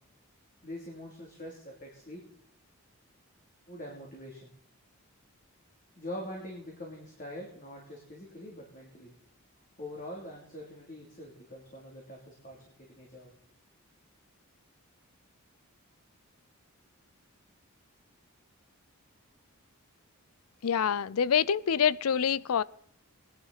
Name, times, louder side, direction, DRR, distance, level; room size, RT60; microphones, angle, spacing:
voice 1, 0.6-2.3 3.7-4.5 6.0-9.1 9.8-13.4, left 1 dB, 35° left, 2.8 m, -44 dB
voice 2, 20.6-22.6, left 7 dB, 75° left, 0.5 m, -26 dB
19.5 x 11.0 x 4.1 m
head